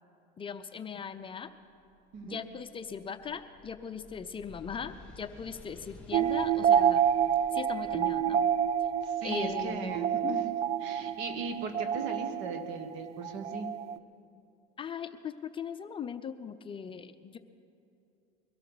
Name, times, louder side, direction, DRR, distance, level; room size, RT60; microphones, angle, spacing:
voice 1, 0.4-1.5 2.2-7.0 7.5-8.4 9.2-10.4 14.8-17.4, left 7 dB, 25° left, 9 dB, 0.6 m, -39 dB
sound 1, 1.4-12.0, left 2 dB, 5° left, 2.1 m, -55 dB
sound 2, 6.1-14.0, right 9 dB, 30° right, 0.3 m, -28 dB
voice 2, 9.0-10.5 10.8-13.7, right 4 dB, 65° right, 7 dB, 1.6 m, -38 dB
22.5 x 13.0 x 4.1 m, 2.6 s
supercardioid pair, 110°, 21 cm